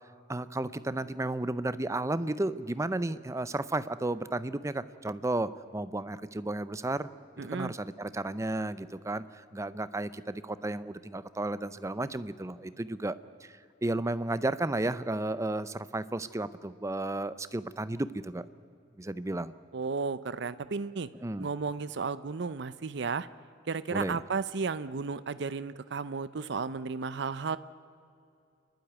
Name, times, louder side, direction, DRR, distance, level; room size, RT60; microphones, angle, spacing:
voice 1, 0.3-7.1 7.4-13.1 13.4-18.4 19.0-19.5 21.2-21.5 23.9-24.2, right 2 dB, 15° right, 14 dB, 0.6 m, -33 dB
voice 2, 7.4-7.7 19.7-21.1 21.4-23.3 23.7-27.6, right 4 dB, 65° right, 14 dB, 0.6 m, -33 dB
29.0 x 12.0 x 9.3 m, 2.5 s
head